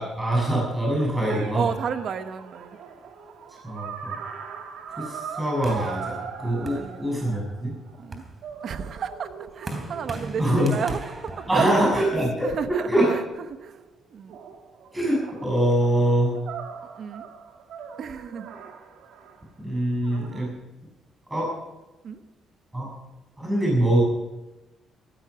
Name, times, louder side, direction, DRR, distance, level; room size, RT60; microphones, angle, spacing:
voice 1, 0.0-1.7 3.6-4.2 5.0-7.7 10.4-10.8 11.5-12.5 12.9-13.1 14.9-16.3 19.6-20.5 21.3-21.5 22.7-22.9 23.4-24.0, right 1 dB, 15° right, -3 dB, 7.0 m, -23 dB
sound 1, 1.3-8.0 8.4-11.7 12.6-13.9 14.3-19.4 20.0-20.5, right 6 dB, 85° right, 1.9 m, -41 dB
voice 2, 1.5-2.8 6.7-7.2 8.0-8.2 8.6-12.0 12.4-13.8 14.1-14.4 17.0-17.3 18.0-18.5 22.0-22.2, right 7 dB, 60° right, 10 dB, 1.0 m, -32 dB
sound 2, 5.6-7.5 7.9-12.6, right 2 dB, 30° right, 3.2 m, -40 dB
14.5 x 14.5 x 5.9 m, 1.0 s
cardioid pair, 90°, 0 cm